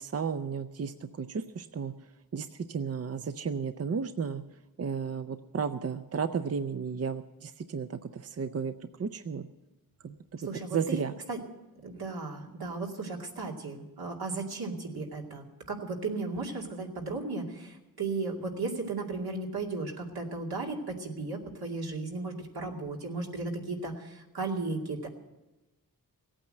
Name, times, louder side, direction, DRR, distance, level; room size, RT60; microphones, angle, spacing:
voice 1, 0.0-1.9 2.3-4.4 4.8-8.7 9.0-9.5 10.0-10.4 10.7-11.2, right 6 dB, 40° right, 10 dB, 0.6 m, -33 dB
voice 2, 10.5-11.0 11.3-11.4 11.8-25.1, right 3 dB, 80° right, 0 dB, 2.5 m, -35 dB
17.0 x 8.9 x 7.7 m, 1.1 s
wide cardioid pair, 115°, 37 cm